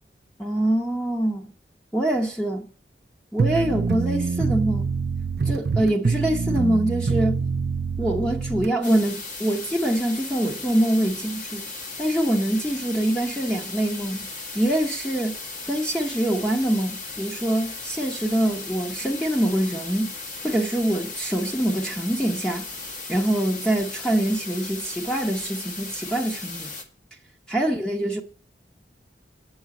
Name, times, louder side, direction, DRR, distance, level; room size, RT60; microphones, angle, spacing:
voice 1, 0.4-1.5 1.9-2.7 3.3-4.9 5.5-7.4 8.0-11.6 12.0-14.3 14.5-15.4 15.7-20.1 20.4-22.7 23.1-26.7 27.5-28.2, right 1 dB, 5° left, 1.1 m, -24 dB
sound 1, 3.4-8.7, right 4 dB, 65° right, 0.5 m, -25 dB
sound 2, 8.8-26.8, left 3 dB, 45° left, 1.9 m, -36 dB
9.2 x 6.4 x 8.2 m
head